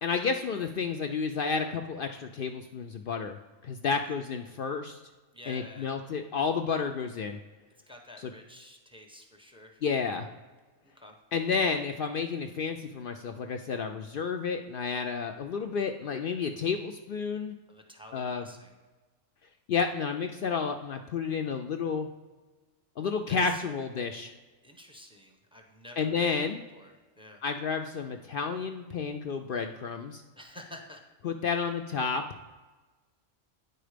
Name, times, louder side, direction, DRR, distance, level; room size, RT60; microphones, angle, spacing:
voice 1, 0.0-3.4 3.6-5.0 5.5-7.4 9.8-10.3 11.3-17.6 18.1-18.4 19.7-22.1 23.0-24.3 26.0-26.6 27.4-30.2 31.2-32.2, left 5 dB, 65° left, 6 dB, 0.5 m, -31 dB
voice 2, 5.3-6.0 7.9-9.8 10.9-11.2 17.7-18.8 23.3-23.8 24.6-26.5 26.7-27.4 30.3-31.1 31.5-31.6, left 1 dB, 5° right, 3 dB, 0.8 m, -50 dB
9.0 x 4.6 x 5.0 m, 1.2 s
omnidirectional pair, 1.4 m